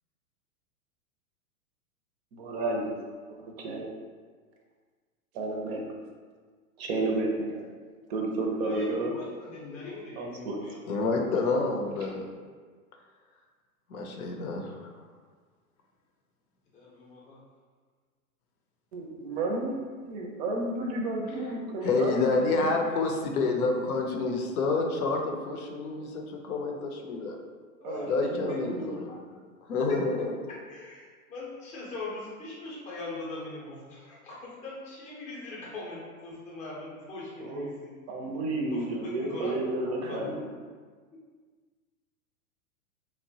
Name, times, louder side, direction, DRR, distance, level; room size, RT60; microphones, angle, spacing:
voice 1, 2.3-3.0 3.6-3.9 5.3-5.8 6.8-7.7 8.1-9.2 10.2-10.6 18.9-22.8 27.8-28.9 37.4-37.7 38.1-40.5, right 2 dB, 45° right, 0 dB, 0.5 m, -31 dB
voice 2, 8.6-11.6 16.7-17.4 27.8-29.4 29.9-30.0 30.7-37.9 38.6-40.4, left 2 dB, 15° left, -5 dB, 0.5 m, -41 dB
voice 3, 10.9-12.2 13.9-14.9 21.8-27.4 28.1-29.1 29.7-30.3, left 3 dB, 80° left, 2 dB, 0.6 m, -28 dB
2.9 x 2.1 x 2.7 m, 1.5 s
hypercardioid pair, 115°, 44 cm